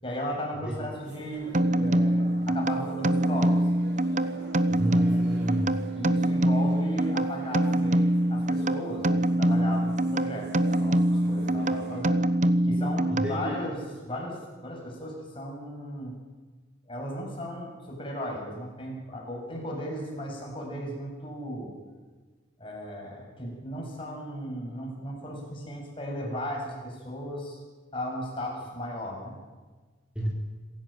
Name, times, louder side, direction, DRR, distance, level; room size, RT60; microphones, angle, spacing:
voice 1, 0.0-3.6 4.9-5.0 5.9-12.2 12.6-16.1 16.9-21.7 22.6-27.6 27.9-29.4, equal, 25° left, -1 dB, 7.9 m, -36 dB
sound 1, 1.0-12.0, right 1 dB, 60° right, 4.8 m, -48 dB
sound 2, 1.5-13.7, right 1 dB, 40° right, 1.0 m, -25 dB
voice 2, 4.7-5.7 13.1-13.5 30.2-30.3, right 1 dB, 5° right, -3 dB, 4.1 m, -30 dB
26.5 x 16.5 x 9.2 m, 1.4 s
head